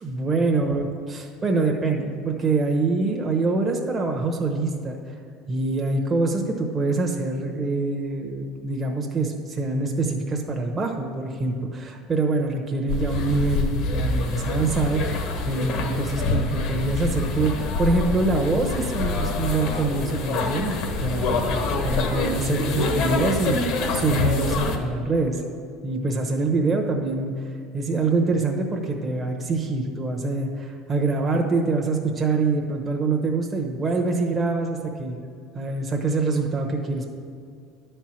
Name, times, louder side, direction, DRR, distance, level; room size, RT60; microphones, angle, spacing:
voice 1, 0.0-5.2 5.5-25.4 25.8-27.3 27.7-35.2 35.5-37.1, right 3 dB, 20° right, 1 dB, 1.0 m, -25 dB
sound 1, 12.9-24.8, left 3 dB, 65° left, 1.3 m, -26 dB
11.0 x 4.5 x 7.5 m, 2.3 s
supercardioid pair, 120°, 0 cm